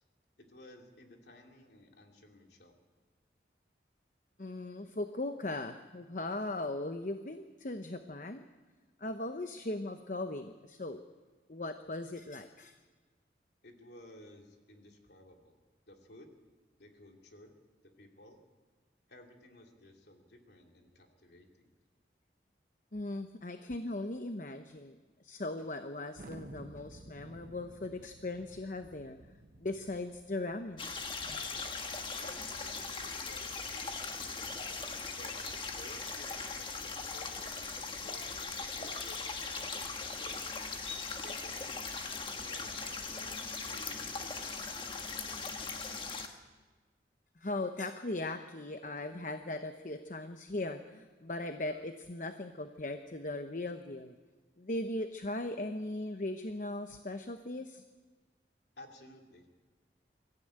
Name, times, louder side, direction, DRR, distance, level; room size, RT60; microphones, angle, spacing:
voice 1, 0.4-2.7 13.6-16.3 16.8-17.6 17.8-18.4 19.1-21.7 32.2-34.5 35.2-35.4 35.7-40.3 41.2-41.8 42.1-44.8 58.8-59.5, left 1 dB, 65° left, 2 dB, 2.9 m, -56 dB
voice 2, 4.4-8.5 9.0-11.0 11.5-12.8 22.9-29.2 29.6-30.9 46.3-46.4 47.4-54.1 54.6-57.8, left 2 dB, 45° left, 7 dB, 0.9 m, -39 dB
Thunder, 26.2-31.3, right 2 dB, 50° right, 0.9 m, -53 dB
sound 1, 30.8-46.3, left 4 dB, 30° left, 1.4 m, -39 dB
23.5 x 14.5 x 8.9 m, 1.4 s
head